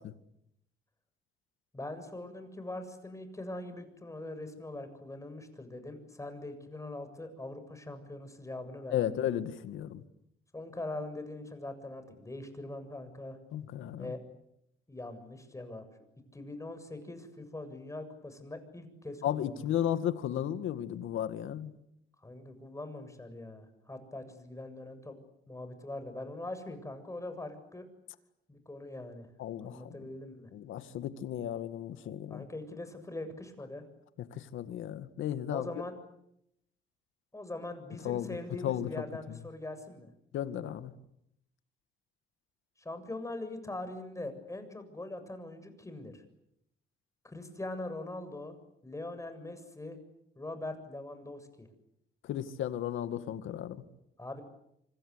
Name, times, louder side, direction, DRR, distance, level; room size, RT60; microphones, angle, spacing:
voice 1, 1.7-9.2 10.5-13.4 13.9-14.2 14.9-15.8 16.3-19.7 22.2-25.2 25.5-27.8 28.5-29.3 29.6-30.5 32.3-33.8 35.5-35.9 37.3-40.1 42.8-46.2 47.2-48.5 48.8-50.0 50.4-51.7 54.2-54.4, left 2 dB, 15° left, 9 dB, 7.4 m, -42 dB
voice 2, 8.9-10.0 13.5-14.1 19.2-21.7 29.4-29.9 30.5-32.5 34.3-35.7 38.0-38.4 38.6-38.9 40.3-40.9 52.2-53.8, left 10 dB, 80° left, 11 dB, 2.1 m, -34 dB
27.0 x 26.5 x 8.3 m, 0.79 s
cardioid pair, 90°, 20 cm